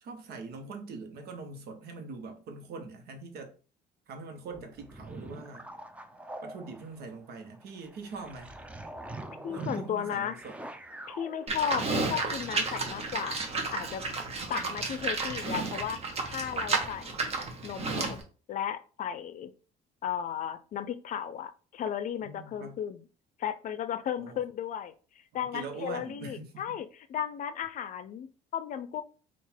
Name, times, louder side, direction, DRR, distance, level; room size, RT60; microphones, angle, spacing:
voice 1, 0.0-3.5 4.1-5.7 6.4-8.5 9.5-10.6 22.2-22.8 24.2-24.4 25.3-26.8, right 4 dB, 70° right, 1.0 m, -43 dB
sound 1, 4.4-12.3 12.9-13.0, right 2 dB, 10° right, 0.5 m, -44 dB
voice 2, 9.4-10.4 11.1-14.0 14.5-16.0 16.3-17.3 17.6-18.2 18.5-19.5 20.0-23.1 23.4-24.9 25.3-29.0, left 9 dB, 50° left, 0.5 m, -35 dB
Livestock farm animals working animals, 11.5-18.2, right 3 dB, 35° right, 1.0 m, -32 dB
3.8 x 2.5 x 4.4 m
cardioid pair, 110°, 17 cm